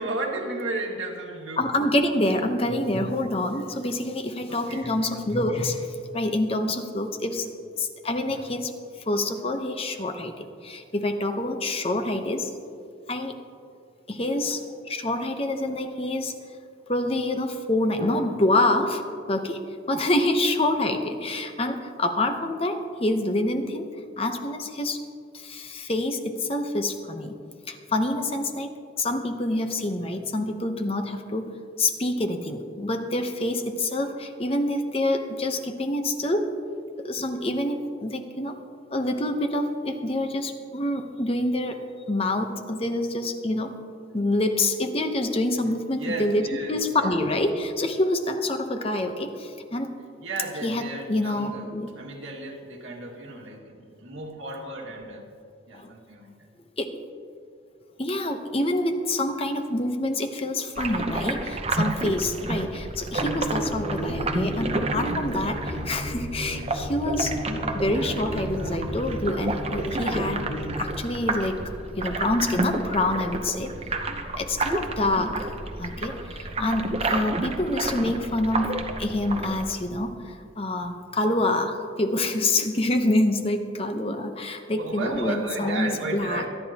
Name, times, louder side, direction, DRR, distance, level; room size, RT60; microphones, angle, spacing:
voice 1, 0.0-1.6 4.5-5.2 7.3-7.5 45.9-47.1 50.2-51.7 52.0-55.3 55.7-56.3 67.7-68.9 69.6-69.7 84.7-86.5, right 2 dB, 80° right, 0 dB, 2.1 m, -34 dB
voice 2, 1.6-7.5 7.8-8.7 9.1-12.5 13.1-13.3 14.1-16.3 16.9-19.0 19.3-19.6 19.9-23.9 24.2-25.0 25.3-27.3 27.7-31.5 31.8-36.5 37.0-38.6 38.9-41.8 42.1-43.7 44.1-49.9 50.6-50.8 51.1-51.9 55.7-55.9 56.8-57.0 58.0-67.3 67.7-70.4 70.8-71.6 72.0-73.7 74.3-75.5 75.8-86.4, left 1 dB, 30° left, 6 dB, 0.9 m, -26 dB
sound 1, 60.8-79.7, right 2 dB, 30° right, 0.8 m, -31 dB
sound 2, 63.2-70.7, equal, 70° left, 3.2 m, -33 dB
25.0 x 10.0 x 2.9 m, 2.3 s
head